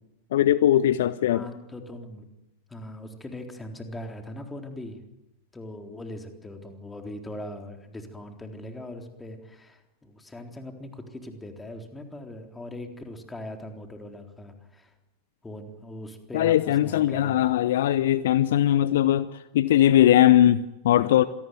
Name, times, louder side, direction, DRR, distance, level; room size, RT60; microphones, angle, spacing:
voice 1, 0.3-1.4 16.3-21.2, left 12 dB, 55° left, 16 dB, 0.8 m, -20 dB
voice 2, 1.3-2.3 2.7-5.0 5.5-14.9 15.4-17.4, left 1 dB, 10° left, 4 dB, 3.8 m, -40 dB
26.5 x 18.5 x 9.4 m, 0.95 s
figure-of-eight pair, 90°, 0 cm